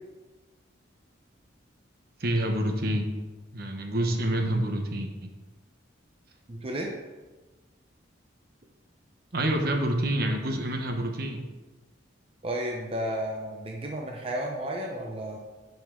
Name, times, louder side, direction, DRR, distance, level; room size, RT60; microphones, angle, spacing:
voice 1, 2.2-3.0 3.5-5.3 9.3-11.4, right 1 dB, 55° right, 4 dB, 1.0 m, -27 dB
voice 2, 6.5-6.9 12.4-15.4, right 1 dB, 30° right, 0 dB, 0.7 m, -32 dB
10.5 x 5.3 x 3.8 m, 1.2 s
head